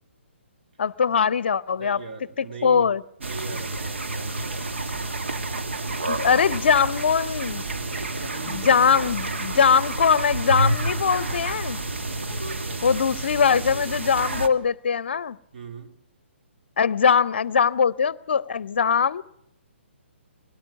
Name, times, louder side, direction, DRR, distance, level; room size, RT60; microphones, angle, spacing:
voice 1, 0.8-2.0 2.6-3.0 6.1-7.6 8.5-11.8 12.8-15.4 16.8-19.2, left 6 dB, 60° left, 0.6 m, -21 dB
voice 2, 1.8-2.9 3.2-4.7 8.0-9.1 12.6-13.1 15.5-16.0, right 4 dB, 50° right, 2.7 m, -40 dB
sound 1, 3.2-14.5, right 2 dB, 70° right, 1.8 m, -29 dB
20.5 x 18.0 x 7.1 m
figure-of-eight pair, 130°, 7 cm